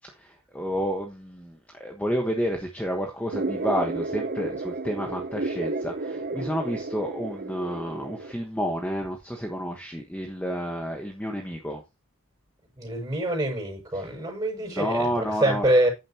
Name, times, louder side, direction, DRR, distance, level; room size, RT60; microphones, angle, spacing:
voice 1, 0.2-11.8 13.9-14.1 14.7-15.8, equal, 5° left, 1.3 m, -30 dB
sound 1, 3.3-8.3, right 2 dB, 40° right, 0.8 m, -32 dB
voice 2, 12.8-15.9, right 1 dB, 15° right, 6.7 m, -25 dB
10.5 x 9.0 x 3.0 m
head